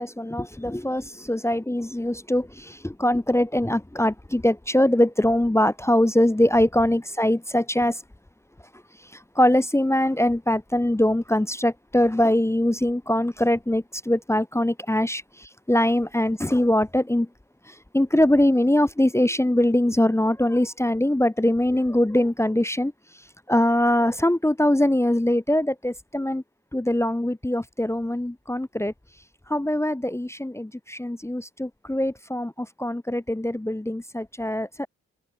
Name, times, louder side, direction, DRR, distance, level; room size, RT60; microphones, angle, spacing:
voice 1, 0.0-8.0 9.1-15.2 15.7-17.3 17.7-22.9 23.5-26.4 26.7-28.9 29.5-34.9, left 1 dB, 10° left, 0.8 m, -22 dB
cardioid pair, 55°, 30 cm